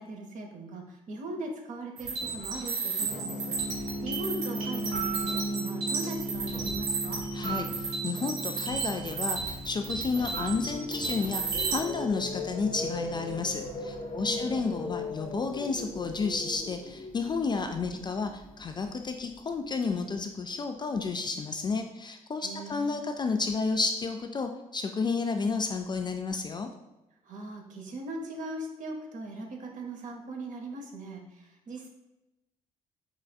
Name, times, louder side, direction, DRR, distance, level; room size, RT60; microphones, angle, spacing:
voice 1, 0.0-7.2 14.2-14.7 22.4-23.0 27.2-31.9, right 2 dB, 45° right, 2 dB, 0.8 m, -40 dB
sound 1, 2.0-11.8, right 4 dB, 80° right, 1.3 m, -33 dB
sound 2, 3.0-17.7, right 1 dB, 85° left, 0.9 m, -39 dB
voice 2, 7.3-26.7, left 4 dB, 25° left, 5 dB, 0.3 m, -31 dB
sound 3, 9.8-19.9, left 2 dB, 40° left, 0.8 m, -40 dB
4.7 x 3.2 x 2.3 m, 0.96 s
figure-of-eight pair, 45°, 18 cm